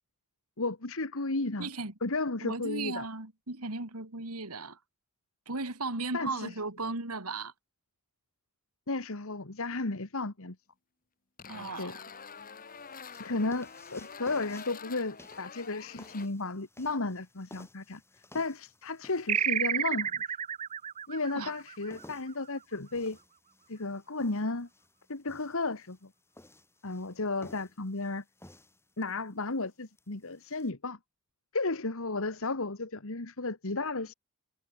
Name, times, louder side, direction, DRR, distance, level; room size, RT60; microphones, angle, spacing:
voice 1, 0.6-1.7 2.0-3.1 6.1-6.5 8.9-10.6 11.8-11.9 13.2-18.0 18.3-20.2 21.1-23.2 23.7-24.7 25.1-26.1 26.8-28.2 29.0-31.0 31.5-34.1, left 3 dB, 65° left, 1.8 m, -33 dB
voice 2, 1.6-1.9 2.4-4.8 5.5-7.5 11.5-12.0 21.3-21.5, right 3 dB, 85° right, 3.2 m, -36 dB
sound 1, 11.4-16.3, left 6 dB, 40° left, 2.4 m, -47 dB
sound 2, 12.1-30.7, left 1 dB, 10° left, 6.9 m, -57 dB
sound 3, 19.3-22.3, right 9 dB, 30° right, 0.4 m, -31 dB
head